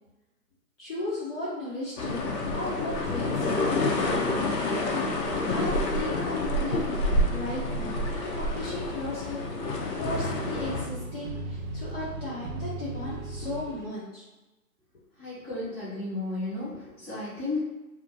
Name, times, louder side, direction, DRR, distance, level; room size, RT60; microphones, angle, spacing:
voice 1, 0.8-3.8 5.5-6.9 7.3-14.2, left 2 dB, 40° left, -8 dB, 0.6 m, -36 dB
sound 1, 2.0-10.9, left 2 dB, 90° left, 0.7 m, -28 dB
sound 2, 3.3-13.9, right 2 dB, 85° right, 0.6 m, -40 dB
voice 2, 15.2-17.6, left 2 dB, 5° left, -15 dB, 1.0 m, -33 dB
2.5 x 2.1 x 2.6 m, 1.1 s
hypercardioid pair, 140°, 48 cm